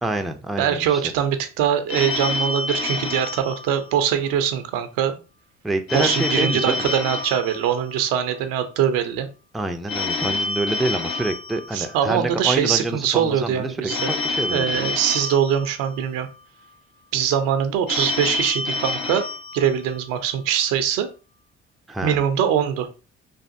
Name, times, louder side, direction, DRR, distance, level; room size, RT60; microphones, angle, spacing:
voice 1, 0.0-1.0 5.6-6.9 9.5-14.8 21.9-22.2, right 2 dB, ahead, 0.3 m, -27 dB
voice 2, 0.6-5.2 5.9-9.3 11.7-14.1 14.5-16.3 17.1-19.2 19.5-21.1 22.0-22.9, right 9 dB, 80° right, 0.6 m, -22 dB
Telephone, 1.9-4.4 5.9-8.4 9.9-12.4 13.9-16.4 17.9-20.4, left 3 dB, 85° left, 0.8 m, -28 dB
3.3 x 2.4 x 2.6 m
hypercardioid pair, 55°, 33 cm